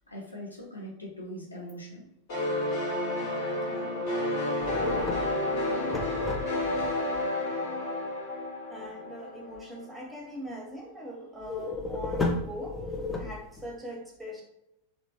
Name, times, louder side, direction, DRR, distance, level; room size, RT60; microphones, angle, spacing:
voice 1, 0.1-2.1, equal, 85° left, -2 dB, 0.6 m, -41 dB
sound 1, 2.3-9.8, left 1 dB, 50° left, 1.1 m, -30 dB
sound 2, 4.6-6.9 11.4-13.7, left 3 dB, 15° left, 0.4 m, -33 dB
voice 2, 8.7-12.8 13.2-14.4, equal, 5° right, -2 dB, 0.8 m, -41 dB
2.9 x 2.1 x 2.7 m, 0.83 s
figure-of-eight pair, 90°, 0 cm